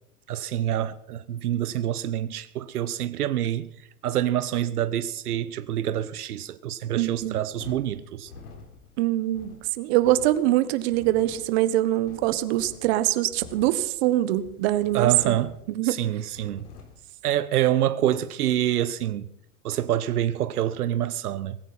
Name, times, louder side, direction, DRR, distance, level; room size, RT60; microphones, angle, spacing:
voice 1, 0.3-3.7 4.0-8.3 14.9-15.6 15.8-16.7 17.2-19.3 19.6-21.6, right 11 dB, 85° right, 0.9 m, -26 dB
voice 2, 6.9-7.4 9.0-15.4 15.7-16.0, right 15 dB, 45° right, 1.4 m, -23 dB
sound 1, 7.1-17.0, left 4 dB, 85° left, 4.3 m, -48 dB
18.5 x 16.0 x 4.3 m
hypercardioid pair, 135°, 44 cm